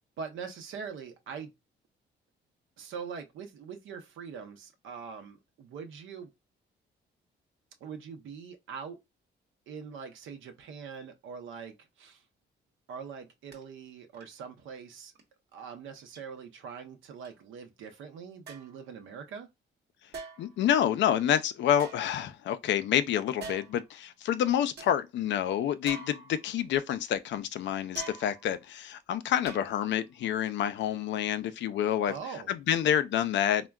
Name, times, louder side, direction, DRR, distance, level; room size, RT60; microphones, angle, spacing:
voice 1, 0.2-1.5 2.8-6.3 7.8-9.0 9.7-12.2 12.9-15.1 15.5-19.5 32.1-32.6, right 6 dB, 80° right, 0.7 m, -43 dB
sound 1, 13.5-13.6 14.1-14.4 15.1-15.2 16.1-16.2 17.2-17.3 18.5-18.8 20.1-20.6 21.7-22.6 23.4-23.9 24.3-24.4 24.8-24.9 25.8-26.7 28.0-28.6 29.4-30.0 30.4-30.5, right 4 dB, 55° right, 1.0 m, -45 dB
voice 2, 20.4-32.1 32.5-33.7, left 10 dB, 65° left, 0.4 m, -28 dB
3.5 x 2.2 x 2.2 m
cardioid pair, 90°, 20 cm